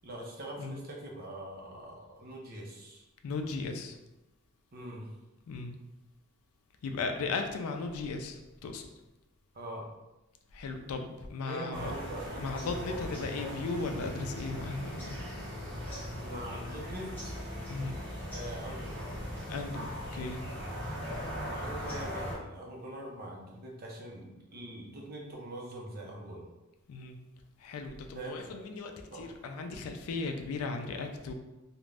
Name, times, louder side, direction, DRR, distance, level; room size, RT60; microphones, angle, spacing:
voice 1, 0.0-3.0 4.7-5.1 9.5-9.9 11.5-12.9 16.1-17.4 18.3-19.0 21.4-26.5 28.1-28.6 29.1-29.3, right 1 dB, 45° right, -1 dB, 0.6 m, -43 dB
voice 2, 3.2-3.9 5.5-5.7 6.8-8.8 10.5-11.9 12.4-15.2 17.7-18.0 19.5-20.4 26.9-27.2 27.6-31.3, left 3 dB, 75° left, 5 dB, 0.3 m, -36 dB
sound 1, 11.7-22.3, equal, 10° left, 1.2 m, -39 dB
2.4 x 2.1 x 3.2 m, 1.0 s
head